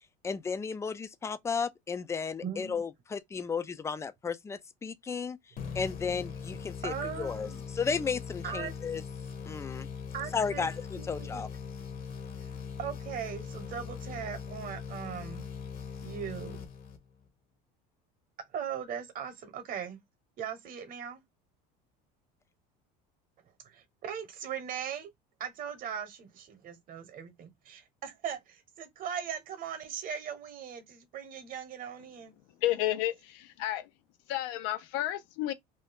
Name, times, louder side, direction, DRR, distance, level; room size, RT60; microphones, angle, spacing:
voice 1, 0.2-5.4 5.8-7.5 7.7-9.0 9.5-9.9 10.3-10.7 11.1-11.5, left 5 dB, 15° left, 0.3 m, -34 dB
voice 2, 2.4-2.8 6.8-7.6 8.4-8.7 10.1-10.7 11.0-11.5 12.4-12.5 12.8-15.5 16.0-16.7 18.5-20.0 20.4-21.2 23.6-25.1 25.4-32.3, right 8 dB, 45° right, 1.0 m, -39 dB
sound 1, 5.6-17.3, left 6 dB, 45° left, 0.9 m, -41 dB
voice 3, 32.6-33.9 34.3-35.5, left 14 dB, 75° left, 0.6 m, -31 dB
2.6 x 2.3 x 3.4 m
supercardioid pair, 120°, 20 cm